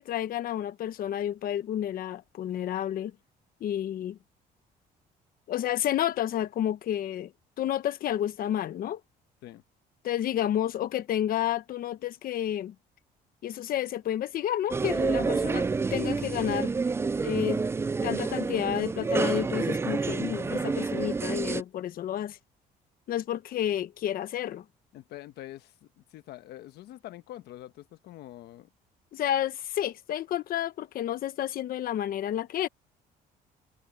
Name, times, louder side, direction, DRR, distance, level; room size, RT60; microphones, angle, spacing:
voice 1, 0.0-3.1 3.6-4.2 5.5-7.3 7.6-9.0 10.0-12.7 13.4-16.7 17.2-17.6 18.0-22.4 23.1-24.6 29.1-32.7, left 11 dB, 60° left, 1.1 m, -30 dB
sound 1, 14.7-21.6, right 4 dB, 15° right, 0.3 m, -28 dB
voice 2, 24.9-28.7, left 14 dB, 75° left, 1.2 m, -45 dB
cardioid pair, 110°, 17 cm